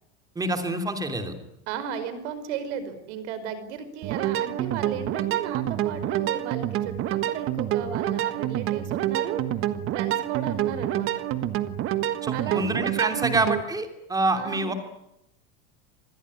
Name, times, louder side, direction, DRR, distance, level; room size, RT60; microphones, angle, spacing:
voice 1, 0.3-1.3 12.2-14.7, right 2 dB, 10° right, 7 dB, 3.0 m, -26 dB
voice 2, 1.7-9.4 9.9-11.2 12.3-13.4 14.4-14.8, right 8 dB, 75° right, 12 dB, 5.0 m, -35 dB
sound 1, 4.0-13.6, right 12 dB, 35° right, 1.5 m, -27 dB
26.0 x 20.0 x 9.8 m, 0.82 s
supercardioid pair, 160°, 35 cm